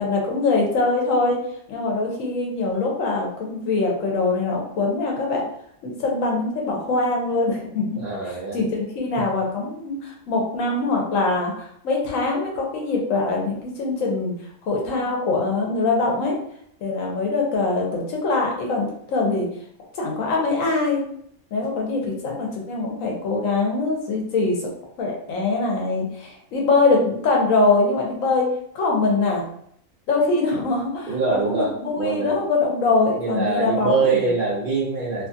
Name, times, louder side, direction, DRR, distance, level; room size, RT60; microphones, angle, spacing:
voice 1, 0.0-1.4 1.7-5.4 5.8-8.0 8.5-14.3 14.6-16.3 16.8-19.5 19.9-21.0 21.5-24.7 25.0-28.5 28.7-29.4 30.1-34.3, left 3 dB, 65° left, -1 dB, 1.1 m, -23 dB
voice 2, 8.0-8.6 9.2-9.3 31.1-32.3 33.2-35.3, right 4 dB, 65° right, -6 dB, 0.5 m, -24 dB
2.9 x 2.3 x 2.6 m, 0.68 s
omnidirectional pair, 1.6 m